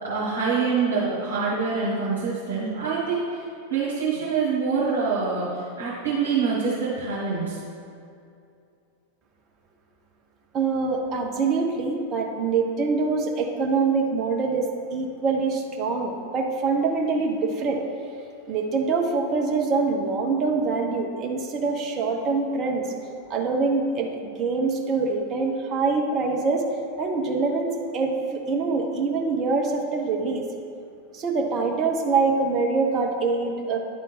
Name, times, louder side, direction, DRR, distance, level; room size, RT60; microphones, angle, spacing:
voice 1, 0.0-3.5 3.7-7.6, right 5 dB, 70° right, -9 dB, 1.6 m, -25 dB
voice 2, 10.5-17.8 18.5-22.9 23.3-26.6 27.0-30.4 31.1-33.8, right 4 dB, 30° right, 1 dB, 0.9 m, -24 dB
10.5 x 3.7 x 4.2 m, 2.5 s
figure-of-eight pair, 90°, 0 cm